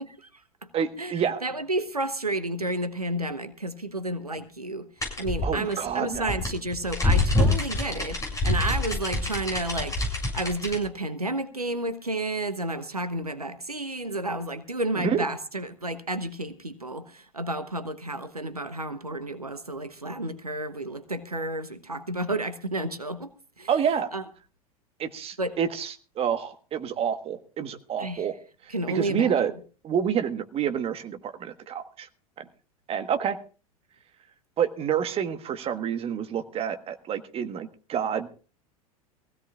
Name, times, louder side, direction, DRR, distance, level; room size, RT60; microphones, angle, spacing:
voice 1, 0.0-0.7 1.0-23.7 24.1-24.2 25.4-25.6 28.0-28.3 28.7-29.3, right 2 dB, 90° right, 12 dB, 0.9 m, -31 dB
voice 2, 0.7-1.4 5.4-6.3 15.0-15.2 23.7-24.1 25.0-28.3 28.9-29.5 29.8-32.1 32.4-32.5 32.9-33.4 34.6-38.3, right 8 dB, 30° right, 9 dB, 1.3 m, -28 dB
sound 1, 5.0-10.8, left 2 dB, 15° left, 7.0 m, -26 dB
22.5 x 16.0 x 2.4 m, 0.36 s
figure-of-eight pair, 80°, 19 cm